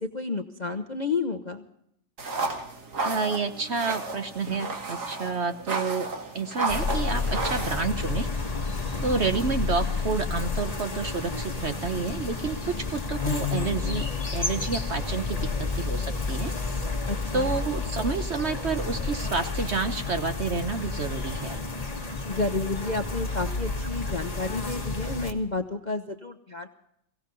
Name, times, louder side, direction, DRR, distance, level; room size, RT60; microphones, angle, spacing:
voice 1, 0.0-1.6 17.1-17.5 22.2-26.7, left 3 dB, 40° left, 6 dB, 0.6 m, -31 dB
sound 1, 2.2-7.8, right 3 dB, 65° right, 2.6 m, -32 dB
voice 2, 3.0-6.1 6.3-8.3 9.0-14.1 14.3-15.5 15.8-16.5 17.3-21.6, right 4 dB, 50° right, 8 dB, 1.0 m, -29 dB
sound 2, 6.7-25.3, left 4 dB, 20° left, 1.8 m, -30 dB
23.0 x 16.5 x 3.8 m, 0.72 s
omnidirectional pair, 1.8 m